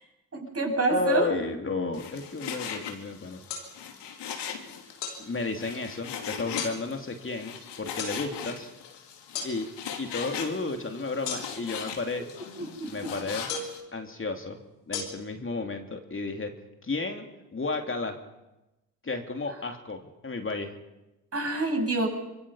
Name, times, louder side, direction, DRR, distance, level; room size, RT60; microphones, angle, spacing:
voice 1, 0.3-1.3 12.8-12.9 21.3-22.1, right 2 dB, 30° right, 1 dB, 7.9 m, -26 dB
voice 2, 0.9-3.4 5.2-8.7 9.4-9.7 10.0-12.3 12.9-13.5 13.9-14.6 14.9-16.5 16.8-17.2 17.5-18.2 19.0-20.8, left 3 dB, 25° left, 5 dB, 3.0 m, -32 dB
Frying (food), 1.9-13.8, left 8 dB, 60° left, 3.0 m, -39 dB
sound 1, 3.5-3.7 5.0-5.2 6.6-6.8 8.0-8.2 9.3-9.5 11.2-11.7 13.5-13.8 14.9-15.0, left 6 dB, 85° left, 3.1 m, -34 dB
25.5 x 23.0 x 5.7 m, 0.98 s
hypercardioid pair, 50°, 47 cm